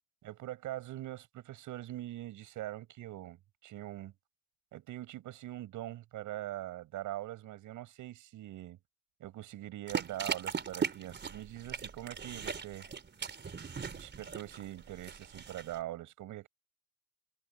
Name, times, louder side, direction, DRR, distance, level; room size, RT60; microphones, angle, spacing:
voice 1, 0.2-4.1 4.7-8.8 9.2-12.9 13.9-16.5, right 14 dB, 85° right, 6.9 m, -43 dB
sound 1, 9.9-15.8, right 6 dB, 35° right, 4.0 m, -39 dB
cardioid pair, 90°, 30 cm